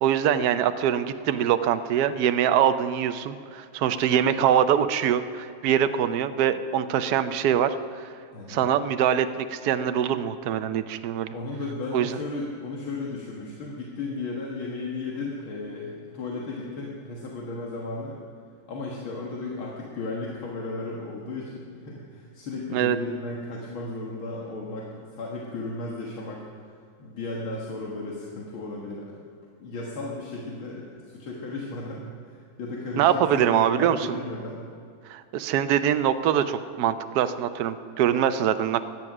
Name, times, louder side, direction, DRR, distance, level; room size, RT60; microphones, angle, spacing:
voice 1, 0.0-8.0 8.5-11.3 11.9-12.2 22.7-23.0 33.0-34.1 35.1-38.8, right 9 dB, 65° right, 10 dB, 1.0 m, -23 dB
voice 2, 8.3-8.7 11.3-18.2 18.7-26.4 27.0-29.1 29.6-34.6, left 3 dB, 85° left, -3 dB, 2.4 m, -35 dB
16.5 x 12.0 x 6.1 m, 2.3 s
omnidirectional pair, 2.2 m